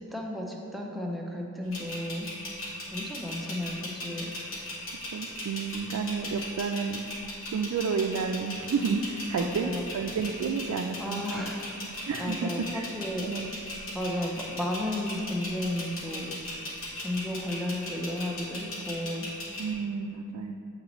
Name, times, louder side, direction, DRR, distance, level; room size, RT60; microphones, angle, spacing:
voice 1, 0.0-2.4 2.9-4.3 9.4-9.8 11.0-13.5 13.9-16.7 17.0-19.3, left 1 dB, ahead, -1 dB, 0.4 m, -34 dB
sound 1, 1.7-19.7, left 1 dB, 65° left, 1.5 m, -38 dB
voice 2, 5.1-7.0 7.5-11.5 12.1-12.9 13.2-13.5 19.6-20.5, right 5 dB, 85° right, 2 dB, 0.3 m, -31 dB
8.4 x 4.0 x 3.0 m, 2.6 s
head